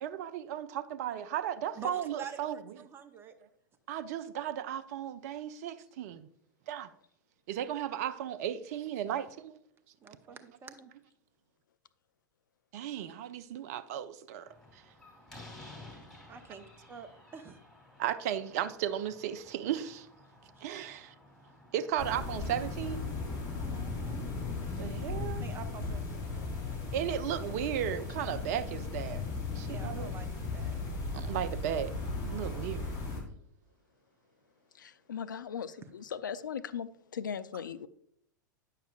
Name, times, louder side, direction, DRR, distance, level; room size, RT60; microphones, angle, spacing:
voice 1, 0.0-2.6 3.9-6.3 6.7-6.9 7.5-9.6 12.7-14.8 18.0-20.1 20.6-21.1 21.7-23.1 24.8-25.5 26.9-29.2 29.6-30.1 31.1-31.9 32.2-32.9, right 10 dB, 50° right, 0.5 m, -35 dB
voice 2, 1.8-3.3 10.0-10.9 16.3-17.6 23.6-24.2 25.4-26.6 29.6-30.3 30.5-30.8, right 5 dB, 20° right, 0.8 m, -47 dB
Slam, 14.5-23.1, left 2 dB, 5° left, 2.6 m, -54 dB
sound 1, 22.0-33.2, left 3 dB, 40° left, 3.1 m, -36 dB
voice 3, 34.8-37.9, left 7 dB, 75° left, 0.4 m, -38 dB
9.1 x 6.6 x 2.4 m
figure-of-eight pair, 95°, 10 cm